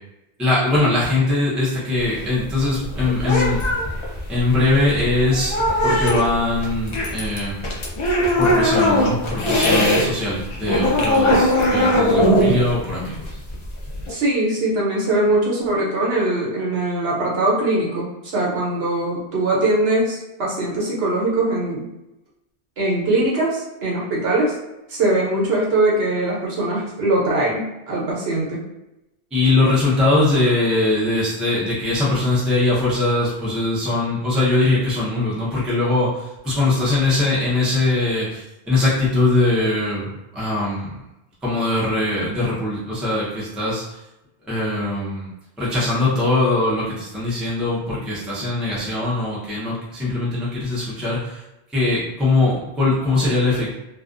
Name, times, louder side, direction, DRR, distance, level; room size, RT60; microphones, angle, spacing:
voice 1, 0.4-3.6 4.3-5.6 5.8-7.5 8.4-13.3 29.3-40.1 40.3-41.0 41.4-44.0 44.4-45.3 45.6-51.4 51.7-53.7, left 2 dB, ahead, -7 dB, 0.6 m, -21 dB
sound 1, 2.0-10.1 10.4-14.1, left 1 dB, 50° left, 0.4 m, -20 dB
voice 2, 14.1-21.9 22.8-24.6 24.9-28.6, right 2 dB, 65° right, -4 dB, 1.0 m, -21 dB
2.4 x 2.3 x 2.5 m, 0.93 s
omnidirectional pair, 1.1 m